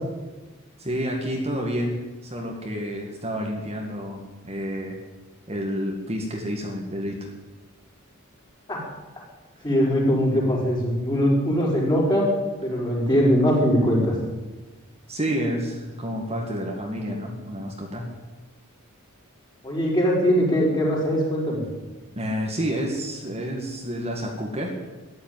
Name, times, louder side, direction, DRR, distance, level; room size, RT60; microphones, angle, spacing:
voice 1, 0.8-5.0 5.5-7.3 15.1-18.1 22.1-24.7, equal, 30° right, 0 dB, 2.2 m, -29 dB
voice 2, 9.6-12.3 12.6-14.1 19.6-21.6, equal, 20° left, -3 dB, 5.0 m, -21 dB
14.0 x 11.0 x 9.3 m, 1.2 s
head